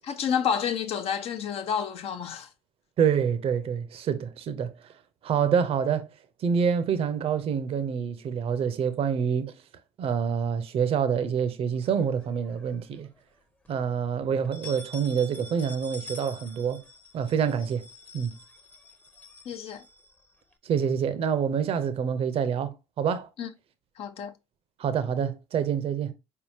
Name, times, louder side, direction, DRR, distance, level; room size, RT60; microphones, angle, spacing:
voice 1, 0.0-2.5 19.5-19.8 23.4-23.5 24.0-24.3, left 8 dB, 55° left, 0.7 m, -29 dB
voice 2, 3.0-4.7 5.2-6.1 6.4-9.5 10.0-13.1 13.7-16.8 17.1-17.8 18.1-18.3 20.6-23.3 24.8-26.1, right 7 dB, 55° right, 0.7 m, -26 dB
sound 1, 11.9-12.8 13.2-13.3 13.6-13.7 14.3-20.5, left 2 dB, 15° left, 0.8 m, -47 dB
4.2 x 3.7 x 2.7 m
hypercardioid pair, 60°, 12 cm